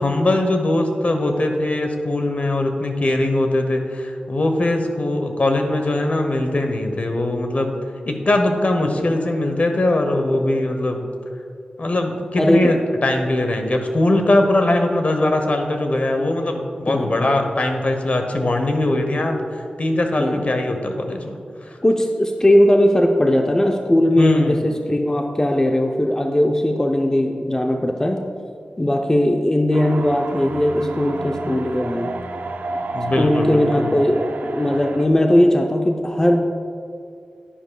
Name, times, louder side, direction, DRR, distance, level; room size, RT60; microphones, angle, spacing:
voice 1, 0.0-7.7 8.0-11.1 11.8-21.8 24.2-24.7 32.9-33.9, left 1 dB, 55° left, 5 dB, 0.9 m, -21 dB
voice 2, 12.4-12.7 16.9-17.2 20.2-20.4 21.8-28.2 28.8-32.2 33.2-36.4, left 1 dB, 20° left, 3 dB, 0.6 m, -18 dB
sound 1, 29.7-35.1, right 3 dB, 90° right, 0.5 m, -30 dB
10.0 x 10.0 x 2.3 m, 2.4 s
wide cardioid pair, 60°, 3 cm